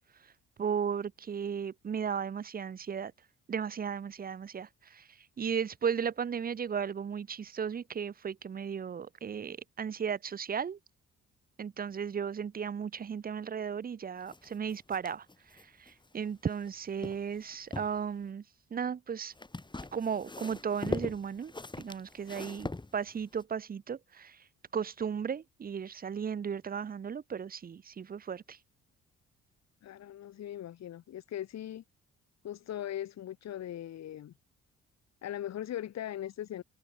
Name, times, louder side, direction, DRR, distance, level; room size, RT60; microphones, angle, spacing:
voice 1, 0.6-3.1 3.5-5.1 5.4-10.8 11.6-15.3 15.8-18.4 18.7-19.3 19.9-24.4 24.7-28.6, right 7 dB, 30° right, 0.6 m, -35 dB
sound 1, 14.3-16.7 17.0-18.0 19.3-23.4, left 2 dB, 15° left, 3.3 m, -41 dB
voice 2, 29.8-31.8 32.4-34.3 35.2-36.6, left 11 dB, 60° left, 1.2 m, -39 dB
cardioid pair, 90°, 30 cm